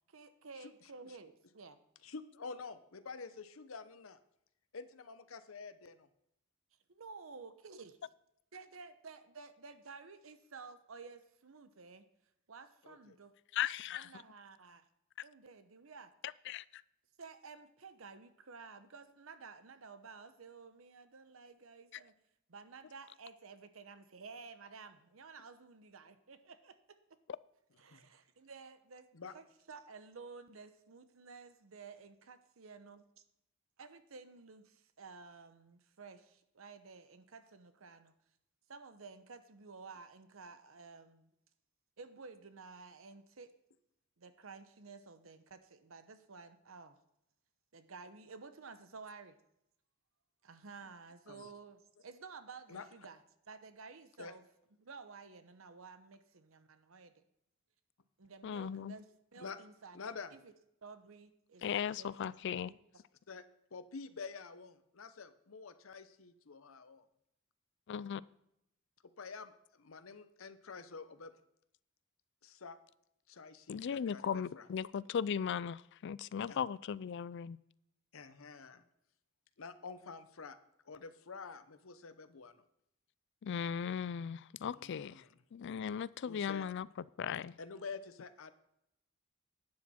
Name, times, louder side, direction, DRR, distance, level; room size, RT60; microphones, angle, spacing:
voice 1, 0.1-1.8 6.9-7.9 8.5-12.1 12.5-13.3 13.9-14.8 15.2-16.1 17.2-22.1 22.5-27.0 27.8-29.1 29.3-33.0 33.8-38.1 38.7-41.3 42.0-43.5 44.2-47.0 47.7-49.4 50.4-53.2 53.5-54.5 54.8-57.2 58.2-60.0 60.3-60.5 60.8-61.6 61.9-62.1 62.5-62.8, right 4 dB, 75° right, 0.9 m, -53 dB
voice 2, 2.0-4.2 4.7-6.1 12.8-13.2 27.9-28.0 29.1-29.3 51.3-51.5 52.7-52.9 54.2-54.3 59.4-59.6 59.9-60.3 63.3-63.4 63.7-67.0 69.2-71.3 72.4-72.8 73.3-74.7 76.5-76.6 78.1-78.8 79.6-80.6 80.9-82.6 84.7-85.4 86.3-86.7 87.6-88.5, left 4 dB, 75° left, 0.8 m, -48 dB
voice 3, 13.5-14.1 16.5-16.6 58.4-58.9 61.6-62.7 67.9-68.2 73.7-77.6 83.4-85.2 85.5-86.9 87.2-87.5, left 8 dB, 60° left, 0.4 m, -37 dB
11.5 x 9.7 x 4.3 m
head